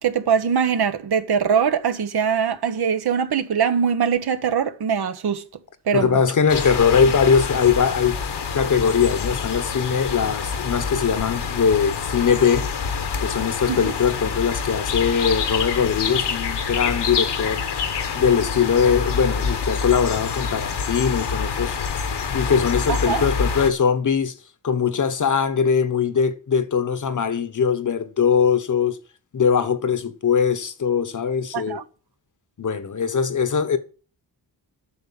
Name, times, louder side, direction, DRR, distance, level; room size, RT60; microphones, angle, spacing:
voice 1, 0.0-5.4 5.8-6.2 13.7-13.9 22.9-23.3 31.5-31.8, right 7 dB, 65° right, 1.1 m, -22 dB
voice 2, 5.9-8.2 8.5-12.7 13.2-17.6 18.1-21.8 22.3-24.3 24.6-29.0 29.3-31.8 32.6-33.8, left 6 dB, 45° left, 1.2 m, -21 dB
sound 1, 6.5-23.7, left 6 dB, 70° left, 1.6 m, -26 dB
8.6 x 6.5 x 8.4 m
wide cardioid pair, 125°, 41 cm